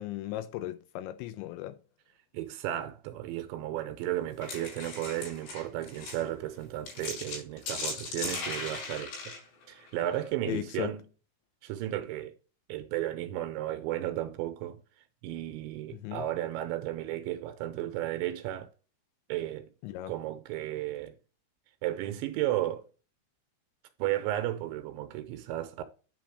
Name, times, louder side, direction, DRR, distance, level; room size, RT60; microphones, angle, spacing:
voice 1, 0.0-1.8 10.5-10.9 15.9-16.2 19.8-20.1, left 15 dB, 85° left, 2.8 m, -36 dB
voice 2, 2.3-9.3 9.7-11.1 11.6-12.3 12.7-14.8 15.2-18.7 19.3-19.7 20.1-21.1 21.8-22.8 24.0-25.8, right 13 dB, 85° right, 2.9 m, -34 dB
sound 1, 4.2-10.3, left 3 dB, 60° left, 6.6 m, -38 dB
10.0 x 3.6 x 4.7 m
omnidirectional pair, 5.5 m